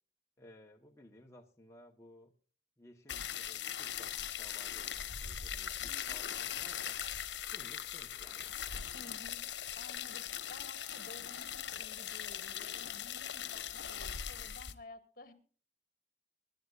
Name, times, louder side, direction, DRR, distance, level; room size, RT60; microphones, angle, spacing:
voice 1, 0.4-2.3 2.8-7.0 7.5-8.9, left 1 dB, 15° left, 1 dB, 1.1 m, -58 dB
sound 1, 3.1-14.7, left 9 dB, 80° left, 1.0 m, -40 dB
voice 2, 5.8-6.4 8.9-9.5 9.8-15.3, left 2 dB, 55° left, 8 dB, 1.9 m, -54 dB
24.5 x 11.0 x 2.5 m, 0.42 s
head